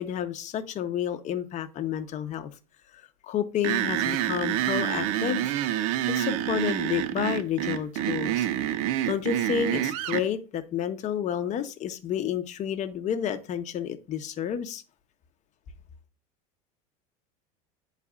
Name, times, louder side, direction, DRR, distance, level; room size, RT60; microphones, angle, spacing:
voice 1, 0.0-2.5 2.9-5.5 6.1-8.8 9.1-14.8, left 9 dB, 40° left, 0.8 m, -30 dB
sound 1, 3.6-10.3, right 12 dB, 70° right, 0.6 m, -27 dB
11.0 x 4.1 x 2.4 m
supercardioid pair, 105°, 18 cm